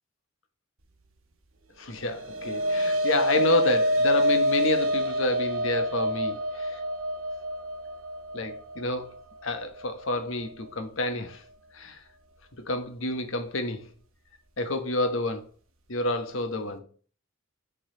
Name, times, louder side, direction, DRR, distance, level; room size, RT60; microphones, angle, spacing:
voice 1, 1.8-6.8 8.3-9.1 9.4-11.4 11.7-12.0 12.6-13.9 14.6-15.5 15.9-16.9, left 2 dB, 70° left, 1.2 m, -29 dB
sound 1, 1.9-10.5, equal, 75° right, 1.1 m, -27 dB
6.6 x 4.1 x 4.9 m
head